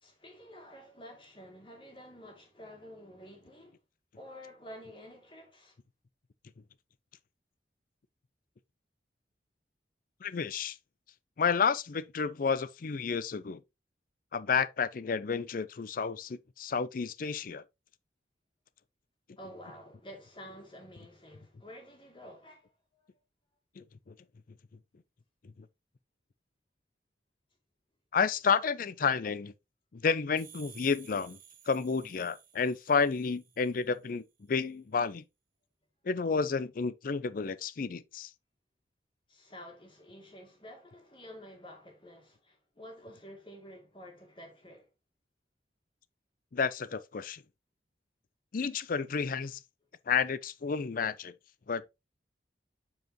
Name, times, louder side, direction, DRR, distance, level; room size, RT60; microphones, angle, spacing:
voice 1, 0.0-3.8 4.1-5.7 19.4-22.7 39.3-44.9, equal, 30° left, 2.4 m, -50 dB
voice 2, 10.2-10.8 11.4-13.6 14.3-17.6 23.8-24.1 28.1-29.5 29.9-31.4 31.7-35.2 36.0-38.3 46.5-47.4 48.5-49.6 50.1-51.3 51.7-51.9, left 5 dB, 50° left, 0.5 m, -31 dB
sound 1, 30.4-33.9, right 8 dB, 50° right, 1.3 m, -55 dB
7.8 x 4.8 x 2.9 m
head